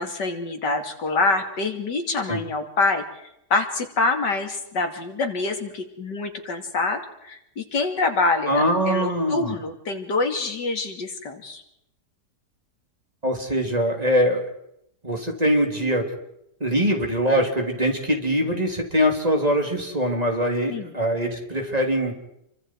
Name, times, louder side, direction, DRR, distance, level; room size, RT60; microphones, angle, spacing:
voice 1, 0.0-3.0 3.5-11.6 20.7-20.9, left 3 dB, 85° left, 5 dB, 3.1 m, -26 dB
voice 2, 8.5-9.5 13.2-14.5 15.0-16.1 16.6-22.1, equal, 20° right, 2 dB, 3.6 m, -23 dB
28.5 x 24.0 x 4.7 m, 0.79 s
omnidirectional pair, 1.8 m